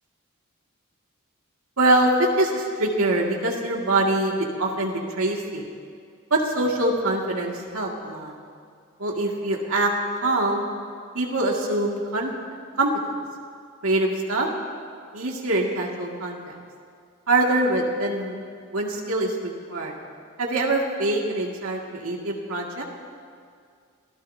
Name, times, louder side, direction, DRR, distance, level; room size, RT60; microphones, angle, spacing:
voice 1, 1.8-2.1 2.4-5.7 6.3-8.3 9.0-9.9 10.2-10.7 11.1-12.3 12.8-12.9 13.8-14.5 15.1-16.5 17.3-18.4 18.7-19.4 19.7-19.9 20.4-22.8, right 2 dB, 75° right, -1 dB, 2.3 m, -24 dB
26.5 x 16.5 x 2.8 m, 2.2 s
head